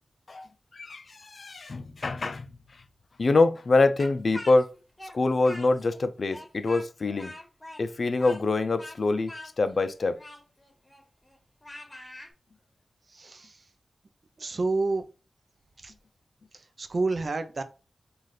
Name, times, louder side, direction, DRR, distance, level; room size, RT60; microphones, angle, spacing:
voice 1, 0.7-2.5 3.2-4.7 5.1-7.3 7.8-9.3 9.6-10.2, left 3 dB, 65° left, 0.4 m, -25 dB
Speech, 4.0-6.0 6.3-12.3, left 1 dB, 25° left, 1.3 m, -44 dB
voice 2, 13.1-13.5 14.4-15.0 15.8-15.9 16.8-17.6, right 3 dB, 60° right, 0.5 m, -28 dB
4.0 x 2.4 x 3.2 m
cardioid pair, 55°, 0 cm